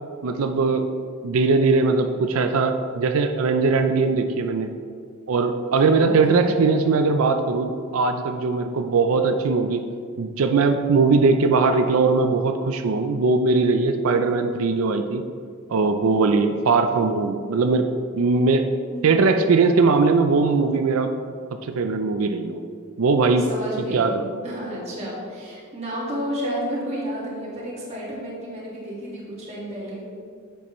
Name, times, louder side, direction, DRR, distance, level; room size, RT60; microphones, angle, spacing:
voice 1, 0.2-0.9 1.2-4.7 5.3-9.8 10.2-15.2 15.7-18.7 19.0-21.1 21.5-22.6 23.0-23.5 23.9-24.3, right 4 dB, 70° right, 7 dB, 0.4 m, -20 dB
voice 2, 6.0-6.5 18.9-19.0 23.3-24.1 24.4-30.0, equal, 30° right, -6 dB, 1.8 m, -31 dB
9.8 x 6.8 x 3.1 m, 2.1 s
head